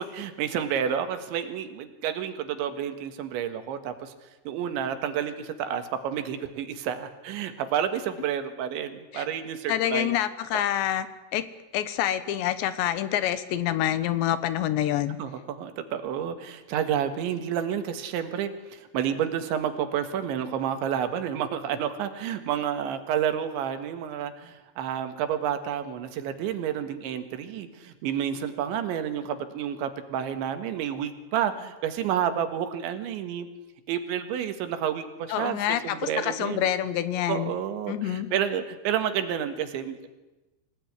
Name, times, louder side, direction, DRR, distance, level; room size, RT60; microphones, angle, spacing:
voice 1, 0.0-4.1 4.5-10.1 10.5-10.6 15.2-33.5 33.9-36.7 37.3-40.1, right 9 dB, 80° right, 9 dB, 4.0 m, -30 dB
voice 2, 9.7-11.1 11.3-11.4 11.7-15.2 35.3-37.5 37.9-38.3, left 11 dB, 75° left, 13 dB, 3.4 m, -27 dB
25.5 x 18.0 x 9.8 m, 1.1 s
omnidirectional pair, 5.2 m